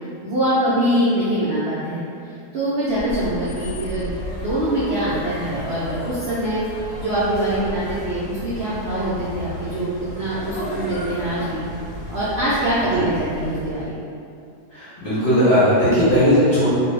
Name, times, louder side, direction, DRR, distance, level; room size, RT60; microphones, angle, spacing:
voice 1, 0.2-6.6 7.0-11.7 12.1-14.1, right 1 dB, 70° right, -9 dB, 0.6 m, -24 dB
sound 1, 2.9-14.0, left 1 dB, 80° left, 1.2 m, -34 dB
voice 2, 14.7-16.7, equal, 45° left, -12 dB, 0.8 m, -17 dB
2.5 x 2.3 x 3.2 m, 2.4 s
omnidirectional pair, 1.7 m